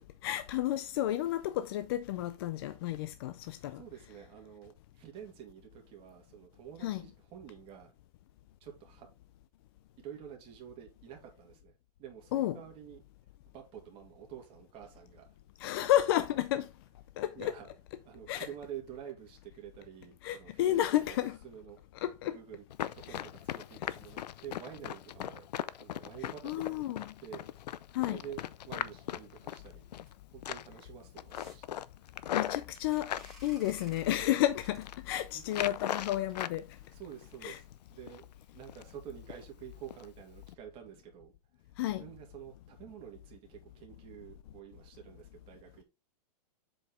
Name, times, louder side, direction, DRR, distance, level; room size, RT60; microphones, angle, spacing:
voice 1, 0.2-3.8 6.8-7.0 12.3-12.6 15.6-16.7 17.2-17.5 18.3-18.5 20.2-21.4 22.0-22.4 23.1-23.2 23.8-24.0 26.4-27.1 27.9-28.2 32.3-33.1 33.4-36.7 37.4-37.6 41.8-42.1, left 13 dB, 35° left, 0.4 m, -31 dB
voice 2, 3.7-7.9 8.6-9.1 10.0-11.7 12.0-13.0 13.5-15.3 17.3-17.7 18.0-21.2 21.4-21.8 22.2-22.6 22.9-25.5 25.8-26.9 27.2-27.5 28.0-29.9 30.3-31.8 35.3-35.6 36.9-37.6 37.9-38.2 38.5-41.3 41.9-45.8, right 9 dB, 25° right, 2.2 m, -48 dB
Run, 22.7-30.1 30.4-30.8 31.2-33.3 33.9-34.4 34.7-35.0 35.5-36.6 36.9-37.7 38.1-38.2 38.6-39.0 39.3-39.4 39.9-40.0 40.4-40.5, left 11 dB, 80° left, 0.6 m, -38 dB
sound 1, 30.0-37.4 38.0-38.1 38.4-38.5 38.8-38.9 39.2-39.4 39.8-40.0 40.3-40.4 40.9-41.0, right 1 dB, ahead, 2.8 m, -60 dB
7.5 x 5.1 x 3.6 m
supercardioid pair, 160°, 21 cm